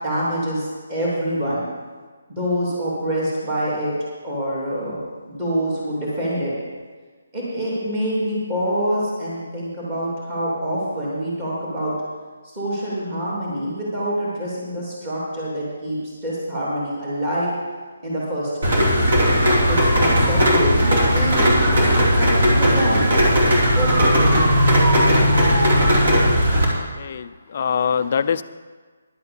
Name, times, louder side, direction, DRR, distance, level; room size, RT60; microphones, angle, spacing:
voice 1, 0.0-1.6 2.3-3.9 4.2-5.0 5.3-6.5 7.3-11.9 12.5-16.0 16.2-17.5 18.0-19.1 19.7-23.1 23.7-24.3, equal, 15° right, -7 dB, 2.9 m, -26 dB
Rain, 18.6-26.6, equal, 45° right, 2.8 m, -17 dB
voice 2, 27.0-28.4, left 7 dB, 30° left, 12 dB, 0.3 m, -23 dB
11.0 x 8.5 x 7.0 m, 1.5 s
hypercardioid pair, 175°, 0 cm